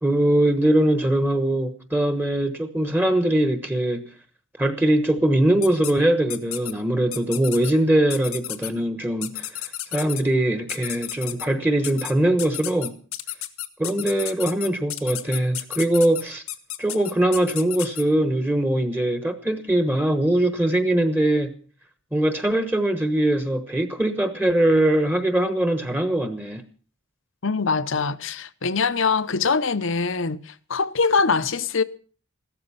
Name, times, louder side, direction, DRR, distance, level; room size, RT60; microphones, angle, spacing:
voice 1, 0.0-4.0 4.6-9.5 9.9-12.9 13.8-16.4 16.8-21.5 22.1-26.6, right 1 dB, 10° right, 1.1 m, -21 dB
sound 1, 5.6-5.9 6.3-6.7 7.1-7.7 8.1-8.7 9.2-10.2 10.7-11.5 11.8-12.1 12.4-18.0, left 14 dB, 80° left, 1.4 m, -32 dB
voice 2, 27.4-31.8, left 4 dB, 60° left, 0.8 m, -23 dB
15.5 x 13.0 x 5.7 m
head